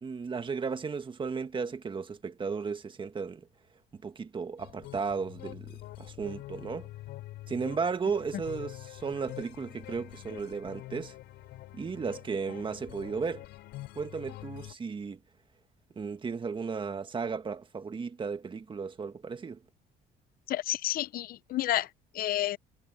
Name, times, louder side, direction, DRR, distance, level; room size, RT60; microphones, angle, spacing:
voice 1, 0.0-3.5 3.9-6.9 7.5-11.2 11.7-13.5 14.0-15.2 16.0-19.6, right 5 dB, 30° right, 1.8 m, -35 dB
sound 1, 4.6-14.7, left 16 dB, 85° left, 5.8 m, -45 dB
voice 2, 20.5-21.9 22.1-22.6, left 14 dB, 60° left, 0.6 m, -30 dB
cardioid pair, 110°, 17 cm